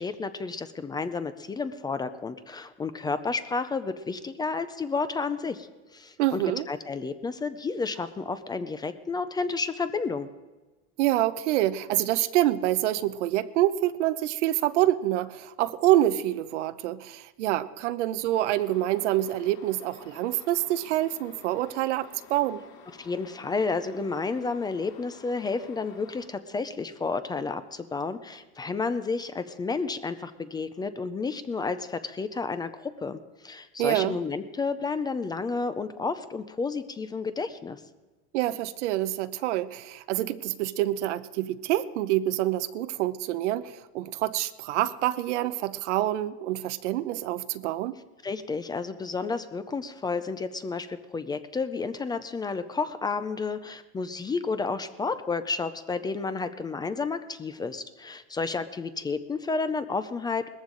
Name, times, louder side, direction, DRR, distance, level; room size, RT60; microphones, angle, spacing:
voice 1, 0.0-10.3 23.0-37.8 48.2-60.5, left 4 dB, 10° left, 11 dB, 0.4 m, -31 dB
voice 2, 6.2-6.7 11.0-22.6 33.8-34.2 38.3-47.9, right 14 dB, 85° right, 13 dB, 0.8 m, -26 dB
sound 1, 18.3-26.3, left 7 dB, 50° left, 2.1 m, -51 dB
19.5 x 14.5 x 3.8 m, 1.2 s
supercardioid pair, 140°, 34 cm